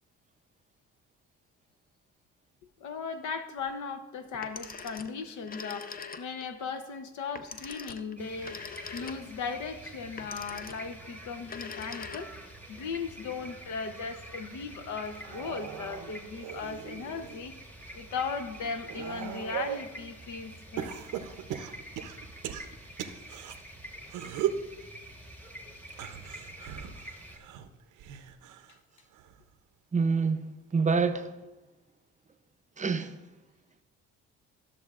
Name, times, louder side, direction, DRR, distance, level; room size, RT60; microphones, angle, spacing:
voice 1, 2.8-8.6 8.9-12.3 12.7-17.5 17.9-21.1, left 5 dB, 75° left, 0.8 m, -37 dB
Telephone, 4.3-6.5 7.4-9.5 10.2-11.0 11.4-12.6, left 5 dB, 30° left, 0.5 m, -43 dB
sound 1, 8.2-27.4, right 1 dB, 5° left, 1.2 m, -47 dB
sound 2, 15.1-17.4 17.9-19.9 20.8-23.6 24.1-24.7 25.9-28.8 29.1-29.5 30.7-30.8, right 10 dB, 90° right, 0.6 m, -38 dB
voice 2, 29.9-31.3 32.8-33.2, right 4 dB, 25° right, 0.5 m, -27 dB
13.0 x 6.8 x 2.4 m
cardioid pair, 90°, 30 cm